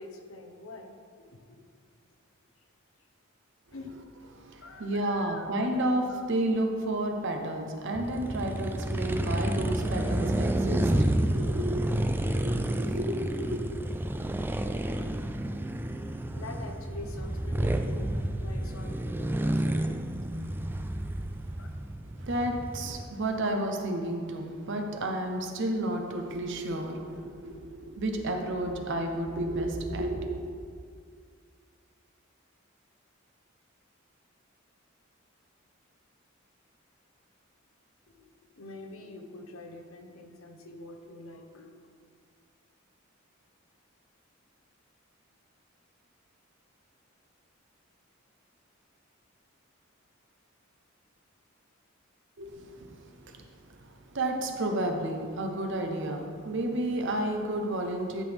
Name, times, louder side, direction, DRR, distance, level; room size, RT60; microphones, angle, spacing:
voice 1, 0.0-1.6 2.6-2.7 3.7-3.9 4.6-5.4 5.8-6.2 16.3-18.1 18.4-20.5 21.6-21.7 38.1-41.7, left 2 dB, 80° left, 4 dB, 0.9 m, -45 dB
voice 2, 4.3-13.6 22.2-30.5 52.4-58.2, right 1 dB, 60° right, 4 dB, 0.9 m, -32 dB
sound 1, 7.9-23.0, right 1 dB, 10° right, 0.3 m, -30 dB
11.0 x 6.1 x 3.5 m, 2.1 s
head